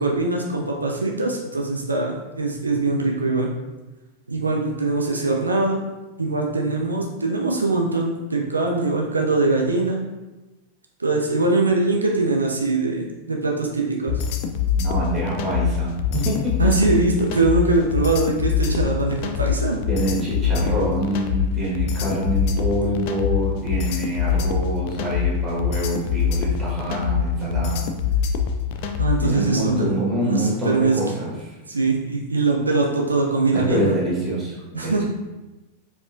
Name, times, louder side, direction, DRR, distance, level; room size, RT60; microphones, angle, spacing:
voice 1, 0.0-3.5 4.3-5.8 6.2-10.0 11.0-14.2 16.6-19.8 29.0-29.9 30.2-31.0 31.7-34.0 34.7-35.0, right 3 dB, 80° right, 0 dB, 0.4 m, -22 dB
sound 1, 14.1-29.3, left 8 dB, 45° left, 0.3 m, -24 dB
voice 2, 14.8-16.7 19.9-27.9 29.2-31.5 33.5-35.0, right 1 dB, 15° right, -5 dB, 1.5 m, -25 dB
4.3 x 2.8 x 2.5 m, 1.1 s
figure-of-eight pair, 90°, 0 cm